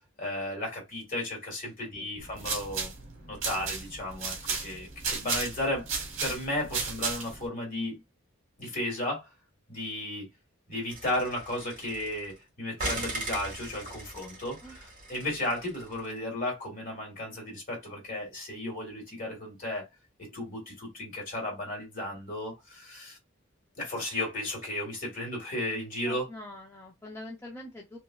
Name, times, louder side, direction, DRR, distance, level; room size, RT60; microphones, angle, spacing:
voice 1, 0.2-2.9 3.3-5.9 6.2-8.0 8.6-9.3 9.7-10.3 10.7-19.9 20.2-23.2 23.8-26.3, left 1 dB, 45° left, 1.8 m, -34 dB
sound 1, 2.2-7.5, right 4 dB, 75° right, 1.1 m, -34 dB
sound 2, 10.9-12.4 12.8-16.0, right 2 dB, 45° right, 1.7 m, -39 dB
voice 2, 26.1-28.0, left 1 dB, 15° left, 0.5 m, -44 dB
3.4 x 3.0 x 2.3 m
head